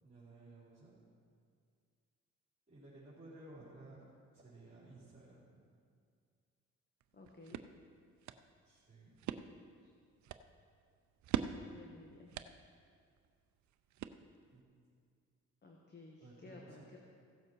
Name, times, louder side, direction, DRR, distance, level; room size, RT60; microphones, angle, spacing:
voice 1, 0.0-0.9 2.7-4.0 4.3-5.4 8.6-9.1 14.5-14.6 16.2-17.0, right 2 dB, 25° right, -9 dB, 3.6 m, -56 dB
sound 1, 7.0-14.6, right 10 dB, 70° right, 0.6 m, -45 dB
voice 2, 7.1-7.6 9.8-9.9 11.5-12.3 15.6-17.0, left 3 dB, 35° left, -1 dB, 1.4 m, -55 dB
16.0 x 7.7 x 4.6 m, 2.2 s
cardioid pair, 90°, 30 cm